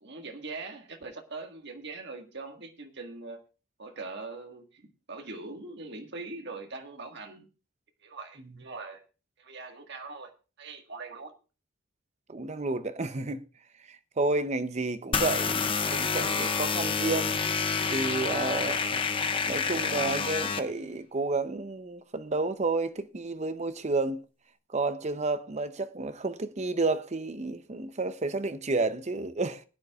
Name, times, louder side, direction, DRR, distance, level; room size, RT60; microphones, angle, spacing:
voice 1, 0.0-3.4 3.8-4.8 5.1-7.5 8.0-9.0 9.4-11.3 18.5-18.8, right 3 dB, 55° right, 1.6 m, -42 dB
voice 2, 12.3-13.4 13.9-17.3 17.9-19.0 19.5-24.2 24.7-29.6, right 3 dB, 30° right, 0.6 m, -31 dB
sound 1, 15.1-20.6, left 5 dB, 25° left, 0.7 m, -28 dB
21.0 x 9.6 x 2.4 m
head